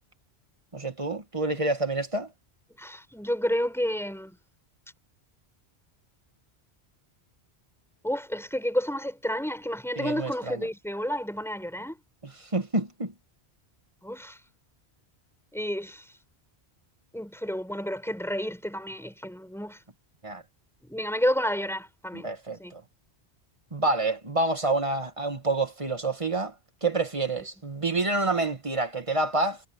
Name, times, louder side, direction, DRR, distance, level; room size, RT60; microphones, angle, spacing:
voice 1, 0.7-2.3 10.0-10.7 12.2-13.1 20.2-20.4 22.1-22.8 23.7-26.5 26.8-29.6, right 2 dB, 30° right, 2.0 m, -28 dB
voice 2, 2.8-4.4 8.0-12.0 14.0-14.4 15.5-16.0 17.1-19.8 20.8-22.3 22.6-22.7, equal, ahead, 6.6 m, -30 dB
omnidirectional pair, 1.1 m